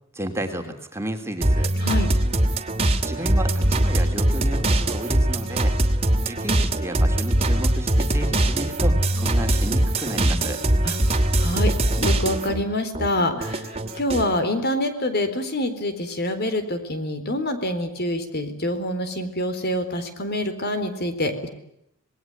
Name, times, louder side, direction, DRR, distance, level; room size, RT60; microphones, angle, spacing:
voice 1, 0.1-1.7 3.0-5.7 6.2-10.6, right 1 dB, 15° right, 4 dB, 3.1 m, -32 dB
sound 1, 1.4-12.6 12.9-14.3, right 1 dB, 30° right, 2.6 m, -22 dB
voice 2, 1.8-2.1 10.8-11.7 12.0-21.5, left 1 dB, 50° left, 9 dB, 4.1 m, -26 dB
27.0 x 21.0 x 9.2 m, 0.80 s
head